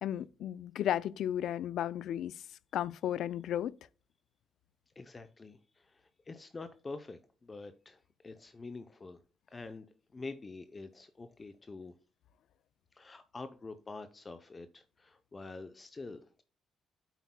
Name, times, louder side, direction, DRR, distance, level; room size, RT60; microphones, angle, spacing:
voice 1, 0.0-2.3 2.7-3.7, left 11 dB, 75° left, 0.4 m, -34 dB
voice 2, 5.0-9.2 9.5-9.9 10.1-12.0 12.9-16.4, left 3 dB, 30° left, 0.6 m, -46 dB
8.3 x 8.1 x 2.2 m
cardioid pair, 90°, 0 cm